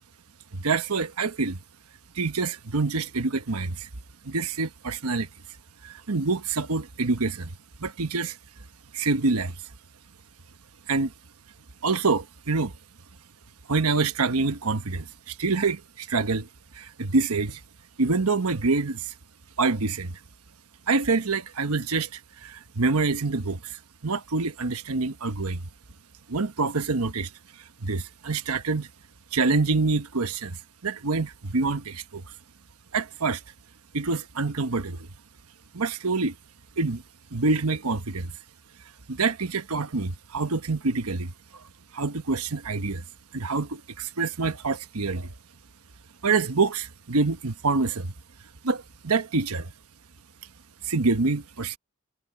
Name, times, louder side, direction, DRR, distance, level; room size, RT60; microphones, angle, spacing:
voice 1, 0.5-1.6 2.1-3.9 4.2-5.3 5.8-7.5 7.8-8.4 8.9-9.6 10.9-11.1 11.8-12.7 13.7-16.5 16.7-17.6 18.0-19.1 19.6-20.1 20.9-25.6 26.3-27.3 27.8-28.9 29.3-32.2 32.9-33.4 33.9-35.1 35.7-36.3 36.8-37.0 37.3-38.3 39.1-41.6 41.9-43.0 43.3-45.3 46.2-48.1 48.6-49.7 50.8-51.8, right 3 dB, 85° right, 1.2 m, -26 dB
head